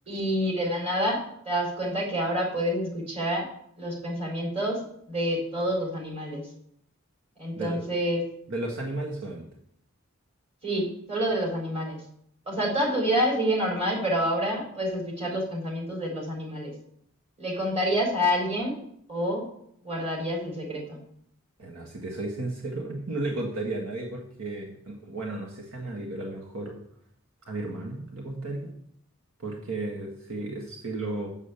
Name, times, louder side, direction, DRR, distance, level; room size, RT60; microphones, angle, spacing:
voice 1, 0.1-3.5 3.8-6.4 7.4-8.2 10.6-12.0 12.5-16.7 17.4-18.8 19.1-19.4 19.8-21.0, equal, 30° right, -1 dB, 4.2 m, -28 dB
voice 2, 8.5-9.5 21.6-26.8 27.5-28.8 29.4-31.3, right 2 dB, 70° right, 0 dB, 1.7 m, -34 dB
7.4 x 7.4 x 8.4 m, 0.69 s
head